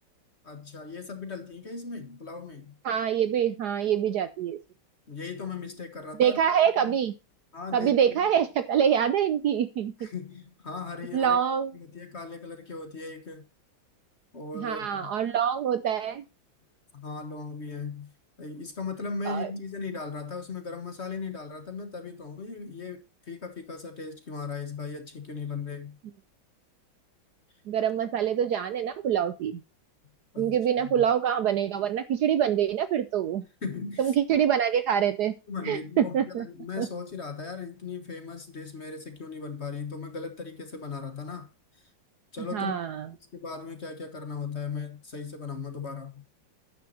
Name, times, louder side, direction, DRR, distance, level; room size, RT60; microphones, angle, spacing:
voice 1, 0.4-2.7 5.1-6.4 6.7-6.9 7.5-8.3 10.0-11.4 11.7-13.4 14.3-15.1 16.9-18.1 18.4-26.0 30.3-31.0 33.6-34.1 35.5-41.5 41.7-41.9 42.3-42.8 43.3-46.2, left 4 dB, 40° left, 1.3 m, -38 dB
voice 2, 2.8-4.6 6.2-7.1 7.7-10.1 11.1-11.7 14.5-16.2 19.3-19.5 27.7-29.6 30.4-33.4 34.0-35.3 35.6-36.5 36.8-36.9 42.5-43.1, right 9 dB, 65° right, 1.0 m, -25 dB
11.0 x 9.4 x 2.8 m
omnidirectional pair, 2.2 m